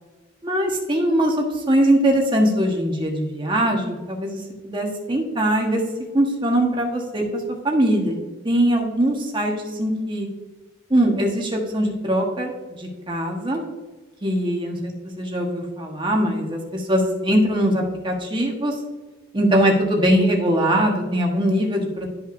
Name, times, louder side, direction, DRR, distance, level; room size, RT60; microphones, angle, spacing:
voice 1, 0.4-4.4 4.6-5.8 6.1-8.1 8.4-10.3 10.9-13.7 14.2-14.7 15.2-18.7 19.3-22.1, right 1 dB, 25° right, 1 dB, 1.3 m, -21 dB
12.0 x 5.6 x 2.6 m, 1.3 s
head